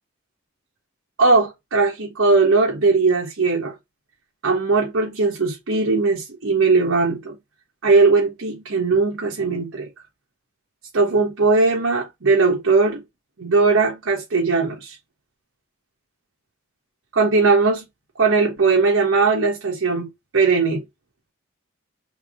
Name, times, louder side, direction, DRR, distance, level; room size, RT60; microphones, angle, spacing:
voice 1, 1.2-3.7 4.4-7.4 7.8-9.9 10.9-13.0 13.4-15.0 17.1-17.8 18.2-20.8, right 4 dB, 65° right, 1.0 m, -19 dB
3.5 x 3.1 x 4.7 m
head